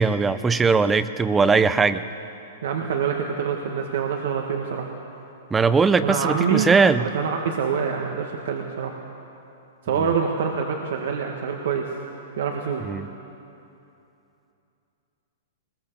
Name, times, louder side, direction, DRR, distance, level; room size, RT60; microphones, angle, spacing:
voice 1, 0.0-2.0 5.5-7.1 12.8-13.1, right 5 dB, 15° right, 13 dB, 0.7 m, -19 dB
voice 2, 2.6-4.9 6.0-6.7 7.0-8.9 9.9-11.9 12.4-12.9, right 6 dB, 70° right, 1 dB, 1.9 m, -26 dB
21.0 x 20.0 x 7.0 m, 2.8 s
hypercardioid pair, 135°, 0 cm